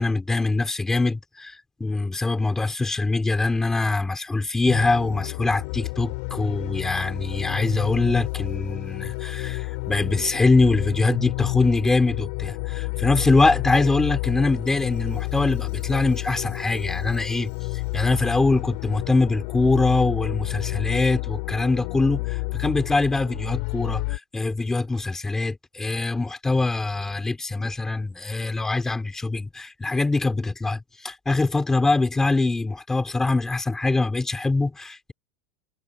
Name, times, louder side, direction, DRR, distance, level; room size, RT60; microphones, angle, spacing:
voice 1, 0.0-17.5 17.9-35.1, left 3 dB, 5° left, 3.3 m, -23 dB
sound 1, 4.7-24.2, left 30 dB, 55° left, 6.5 m, -30 dB
supercardioid pair, 170°, 7 cm